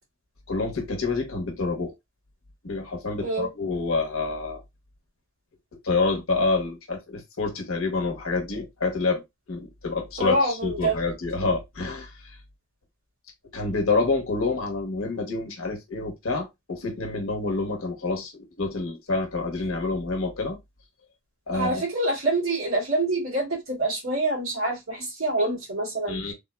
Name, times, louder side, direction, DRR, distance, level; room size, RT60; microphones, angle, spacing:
voice 1, 0.5-1.9 2.6-4.6 5.8-9.2 9.5-12.4 13.5-20.6 21.5-21.8 26.1-26.3, left 3 dB, 80° left, 0.9 m, -27 dB
voice 2, 10.2-11.0 21.5-26.3, right 2 dB, 85° right, 1.9 m, -26 dB
3.6 x 2.1 x 2.2 m
head